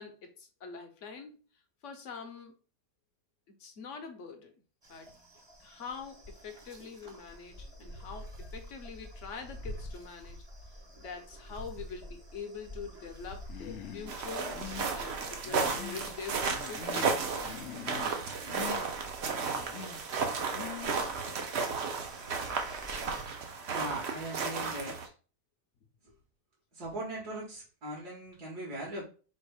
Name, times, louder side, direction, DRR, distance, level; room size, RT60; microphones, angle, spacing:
voice 1, 0.0-1.4 1.8-2.6 3.5-4.5 4.9-5.1 5.6-10.4 11.0-14.6 14.9-17.2, left 5 dB, 55° left, 6 dB, 1.0 m, -44 dB
sound 1, 4.8-23.3, equal, 25° right, 0.7 m, -49 dB
Human voice, 13.5-14.2 14.5-14.9 15.4-16.2 16.4-17.2 17.4-18.2 18.5-18.8 19.4-20.0 20.5-21.0, left 10 dB, 80° left, 0.6 m, -44 dB
sound 2, 14.1-25.1, right 5 dB, 50° right, 0.8 m, -34 dB
voice 2, 23.7-25.1 26.0-26.1 26.7-29.0, right 1 dB, 70° right, -6 dB, 2.3 m, -40 dB
4.3 x 2.6 x 4.8 m, 0.36 s
omnidirectional pair, 1.8 m